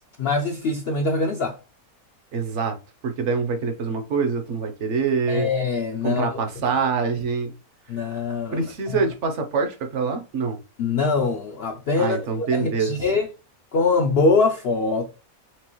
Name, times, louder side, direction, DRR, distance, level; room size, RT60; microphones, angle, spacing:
voice 1, 0.2-1.6 5.3-6.4 7.9-9.0 10.8-13.3 13.7-15.1, left 3 dB, 65° left, 0.6 m, -23 dB
voice 2, 2.3-2.7 3.0-5.5 6.0-7.5 8.5-10.6 12.0-13.0, right 5 dB, 60° right, 1.0 m, -25 dB
4.6 x 3.4 x 3.0 m
omnidirectional pair, 1.5 m